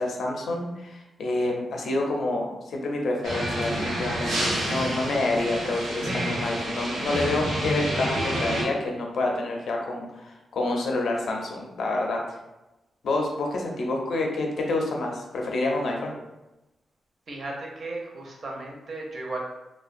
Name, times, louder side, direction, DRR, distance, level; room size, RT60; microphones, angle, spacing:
voice 1, 0.0-12.2 13.0-16.1, left 2 dB, 65° left, 0 dB, 0.4 m, -28 dB
sound 1, 3.2-8.6, right 1 dB, 80° right, 0.8 m, -28 dB
voice 2, 17.3-19.4, right 2 dB, 45° right, -1 dB, 0.5 m, -35 dB
2.5 x 2.0 x 2.5 m, 1.0 s
wide cardioid pair, 145°, 0 cm